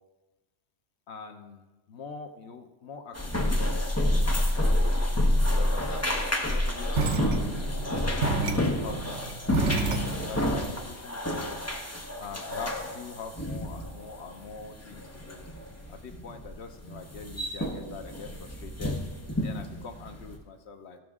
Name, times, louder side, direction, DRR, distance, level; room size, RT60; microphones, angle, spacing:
voice 1, 1.1-4.8 5.4-6.0 6.4-9.8 10.3-11.6 12.2-15.5 15.9-19.0 19.3-21.0, left 5 dB, 70° left, 5 dB, 1.1 m, -44 dB
sound 1, 3.1-20.3, left 1 dB, 15° left, 0.8 m, -29 dB
sound 2, 6.9-10.4, right 3 dB, 85° right, 1.1 m, -29 dB
15.5 x 6.0 x 3.6 m, 1.2 s
omnidirectional pair, 1.2 m